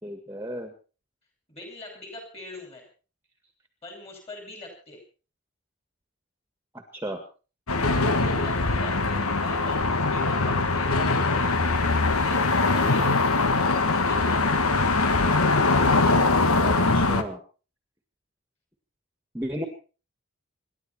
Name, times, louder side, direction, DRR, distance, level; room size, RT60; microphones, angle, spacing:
voice 1, 0.0-0.7 6.7-7.2 16.6-17.4 19.3-19.6, equal, 10° right, 5 dB, 1.8 m, -34 dB
voice 2, 1.5-2.9 3.8-5.0 8.1-13.1 13.6-14.4, left 2 dB, 25° left, 2 dB, 6.1 m, -43 dB
sound 1, 7.7-17.2, left 3 dB, 85° left, 1.6 m, -22 dB
27.5 x 11.5 x 4.4 m, 0.37 s
head